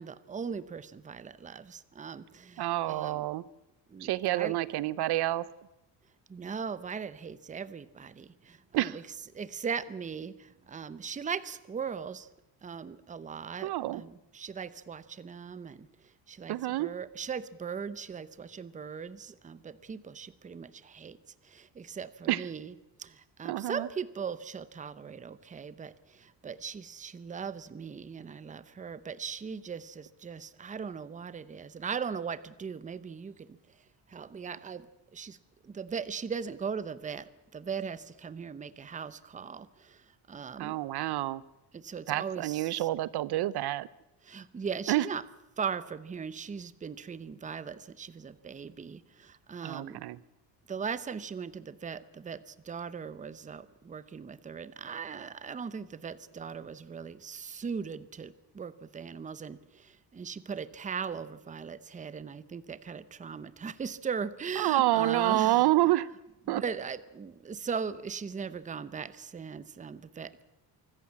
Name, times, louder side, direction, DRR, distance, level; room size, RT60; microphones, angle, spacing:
voice 1, 0.0-3.2 3.9-4.6 6.3-9.0 9.3-12.3 12.6-15.9 16.3-21.2 21.4-22.7 23.0-33.6 34.1-34.9 35.1-35.4 35.6-40.8 41.7-42.9 44.2-45.2 45.6-50.0 50.7-65.6 66.5-70.4, right 6 dB, 15° right, 15 dB, 0.7 m, -39 dB
voice 2, 2.6-3.4 4.0-5.5 8.7-9.0 13.6-14.0 16.5-16.9 22.3-22.5 23.4-23.9 40.6-41.4 42.1-43.9 44.9-45.1 49.6-50.2 64.6-66.1 66.5-66.6, right 15 dB, 60° right, 20 dB, 0.7 m, -28 dB
25.0 x 14.0 x 8.6 m, 0.96 s
cardioid pair, 155°, 43 cm